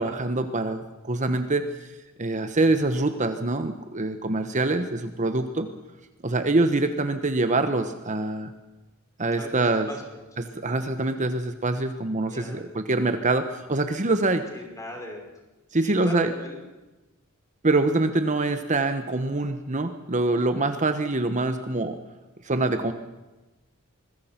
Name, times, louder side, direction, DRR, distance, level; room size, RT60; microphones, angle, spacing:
voice 1, 0.0-5.7 6.2-8.5 9.2-9.9 10.4-14.4 15.7-16.3 17.6-22.0 22.4-22.9, right 2 dB, 35° right, 8 dB, 1.2 m, -25 dB
voice 2, 9.3-10.2 12.3-12.7 14.3-15.2 15.8-16.6, left 1 dB, 15° left, 2 dB, 5.5 m, -38 dB
25.5 x 21.0 x 6.0 m, 1.1 s
head